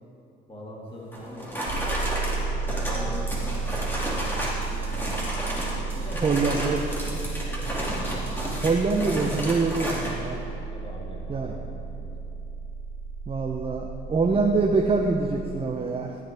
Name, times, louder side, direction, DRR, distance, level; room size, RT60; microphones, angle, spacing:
voice 1, 0.5-1.6 2.4-5.3 5.9-7.1 7.5-7.9 10.7-12.1 14.3-14.4, left 1 dB, 25° left, -3 dB, 2.1 m, -42 dB
sound 1, 1.1-4.6 4.9-5.8 6.1-10.1, equal, 10° left, 2.6 m, -32 dB
sound 2, 1.6-15.5, right 4 dB, 85° right, 1.2 m, -33 dB
sound 3, 3.1-10.0, right 2 dB, 10° right, 2.5 m, -49 dB
voice 2, 6.2-6.8 8.6-10.4 11.3-11.5 13.3-16.2, right 4 dB, 30° right, 1 dB, 0.7 m, -25 dB
14.0 x 8.4 x 3.5 m, 2.9 s
cardioid pair, 90°, 20 cm